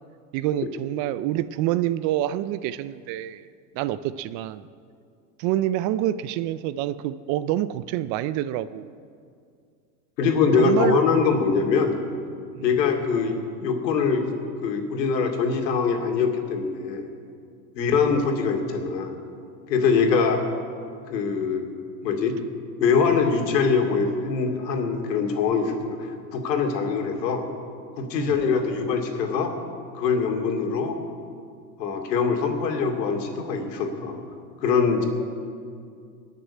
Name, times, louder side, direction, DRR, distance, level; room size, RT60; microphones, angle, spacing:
voice 1, 0.3-3.4 3.7-4.6 5.4-8.9 10.6-11.0 12.5-12.6 17.8-17.9 28.2-28.3, right 13 dB, 40° right, 15 dB, 0.5 m, -27 dB
voice 2, 10.2-12.0 12.6-14.2 14.6-17.0 17.8-19.1 19.7-20.4 21.1-21.7 22.0-22.4 22.8-26.0 26.3-27.5 28.0-29.5 29.9-31.0 31.8-34.2 34.6-35.1, left 5 dB, 80° left, 3 dB, 2.6 m, -23 dB
19.5 x 6.8 x 9.7 m, 2.3 s
hypercardioid pair, 115°, 49 cm